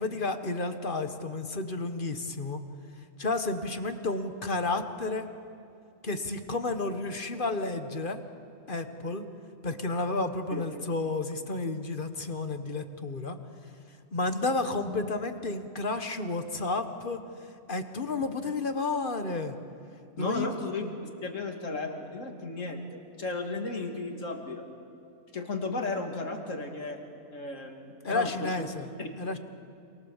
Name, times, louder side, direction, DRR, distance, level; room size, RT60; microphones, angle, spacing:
voice 1, 0.0-2.6 3.2-5.3 6.0-8.2 8.7-9.2 9.6-13.4 14.1-17.2 17.7-19.6 20.2-20.5 28.0-28.9 29.2-29.4, left 3 dB, 40° left, 7 dB, 1.5 m, -31 dB
voice 2, 20.2-20.9 21.2-22.8 23.2-24.6 25.3-27.0 27.3-28.7 29.0-29.1, left 3 dB, 65° left, 3 dB, 2.9 m, -34 dB
27.5 x 27.5 x 7.3 m, 2.5 s
omnidirectional pair, 1.4 m